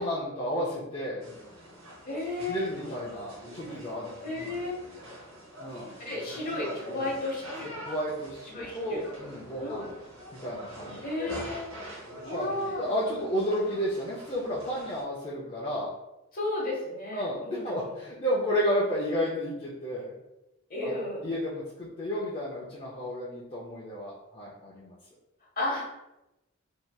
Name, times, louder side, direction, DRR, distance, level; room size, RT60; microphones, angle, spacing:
voice 1, 0.0-1.3 2.5-4.0 5.6-6.0 7.9-10.0 10.3-11.4 12.3-12.5 12.8-15.9 17.1-20.1 20.8-20.9 21.2-25.0, equal, 30° left, -6 dB, 0.5 m, -32 dB
sound 1, 1.2-15.0, equal, 70° right, 0.8 m, -44 dB
voice 2, 2.1-2.7 4.2-4.8 6.0-7.7 8.5-9.0 9.6-9.9 11.0-11.7 12.2-12.9 16.3-18.0 20.7-21.3 25.6-25.9, left 2 dB, 45° left, -3 dB, 0.9 m, -33 dB
3.2 x 2.7 x 2.2 m, 0.93 s
head